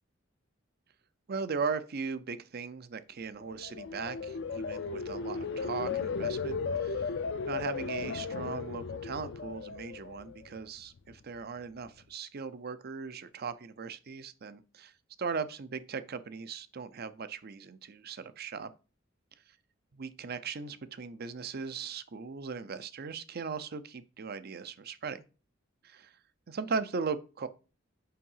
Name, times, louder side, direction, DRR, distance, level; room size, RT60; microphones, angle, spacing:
voice 1, 1.3-7.1 7.5-14.9 15.2-18.7 19.9-25.2 25.8-26.1 26.5-27.5, right 5 dB, 50° right, 0.6 m, -38 dB
sound 1, 3.4-10.6 11.0-11.4, left 5 dB, 65° left, 0.5 m, -36 dB
5.6 x 4.7 x 5.5 m
head